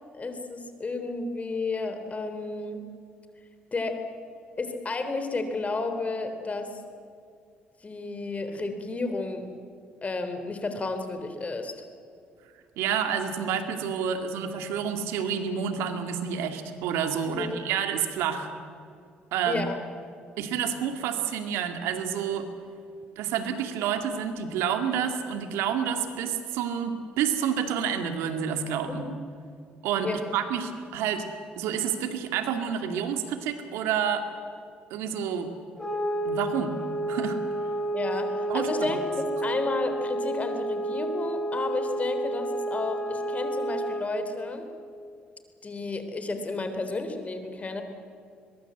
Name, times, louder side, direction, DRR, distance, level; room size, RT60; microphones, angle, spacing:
voice 1, 0.1-2.8 3.7-4.1 4.6-6.8 7.8-9.5 10.0-11.8 17.2-17.6 19.5-19.8 28.9-29.0 30.0-30.3 37.9-44.7 45.6-47.8, left 3 dB, 35° left, 7 dB, 3.6 m, -32 dB
voice 2, 12.8-18.5 19.3-19.6 20.4-22.5 23.2-29.0 29.8-31.3 31.6-34.3 34.9-35.5 36.3-36.8 37.1-37.4 38.5-38.9, right 8 dB, 80° right, 7 dB, 2.4 m, -29 dB
sound 1, 35.8-44.1, right 1 dB, 15° left, 5.8 m, -30 dB
22.0 x 22.0 x 8.2 m, 2.4 s
supercardioid pair, 60°, 4 cm